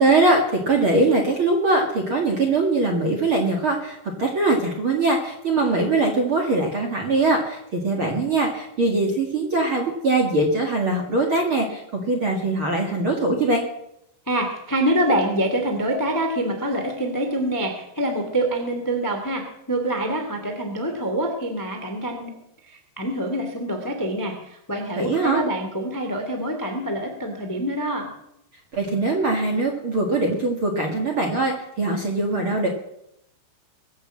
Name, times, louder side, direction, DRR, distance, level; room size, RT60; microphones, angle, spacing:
voice 1, 0.0-13.6 25.0-25.4 28.7-32.7, right 2 dB, 50° right, 0 dB, 1.6 m, -22 dB
voice 2, 14.3-19.4 19.7-22.3 23.0-28.1, right 1 dB, 25° left, 4 dB, 0.4 m, -25 dB
22.5 x 8.7 x 7.5 m, 0.79 s
omnidirectional pair, 5.5 m